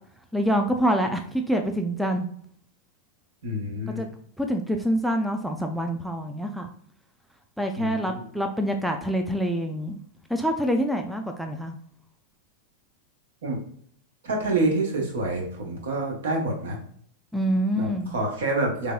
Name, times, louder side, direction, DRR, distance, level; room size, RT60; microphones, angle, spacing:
voice 1, 0.3-2.3 4.0-4.1 4.4-6.7 7.6-10.0 10.3-11.7 17.3-18.1, equal, ahead, 4 dB, 0.4 m, -26 dB
voice 2, 3.4-4.1 7.8-8.2 13.4-13.6 14.2-16.8 17.7-18.9, right 2 dB, 60° right, 0 dB, 1.2 m, -27 dB
3.9 x 3.4 x 2.2 m, 0.62 s
figure-of-eight pair, 90°, 0 cm